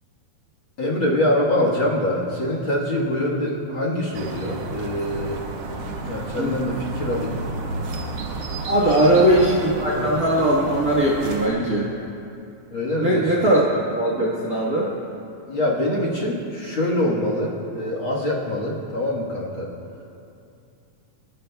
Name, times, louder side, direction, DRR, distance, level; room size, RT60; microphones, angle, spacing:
voice 1, 0.8-5.4 6.0-7.4 8.8-9.3 9.9-10.1 12.7-13.4 15.5-19.7, left 1 dB, 50° left, -3 dB, 1.6 m, -24 dB
sound 1, 4.1-11.5, right 2 dB, 60° right, 1.7 m, -32 dB
voice 2, 8.6-11.9 13.0-14.9, right 1 dB, 85° right, -4 dB, 0.8 m, -20 dB
29.0 x 12.5 x 2.3 m, 2.6 s
omnidirectional pair, 4.0 m